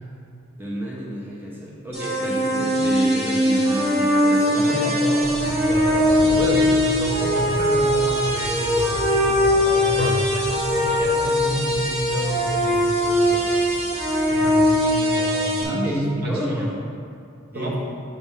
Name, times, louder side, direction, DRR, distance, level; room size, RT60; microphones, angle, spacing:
voice 1, 0.6-4.9 5.3-5.4 10.3-10.4 15.6-16.7 17.5-17.8, equal, 10° right, -5 dB, 0.7 m, -29 dB
sound 1, 1.9-15.6, equal, 30° right, 1.2 m, -21 dB
voice 2, 4.5-10.2 10.5-13.6 14.3-15.8 16.1-16.7 17.5-17.8, equal, 45° right, -2 dB, 0.9 m, -30 dB
sound 2, 5.2-14.6, left 1 dB, 50° left, 0.6 m, -34 dB
7.2 x 3.5 x 5.5 m, 2.3 s
head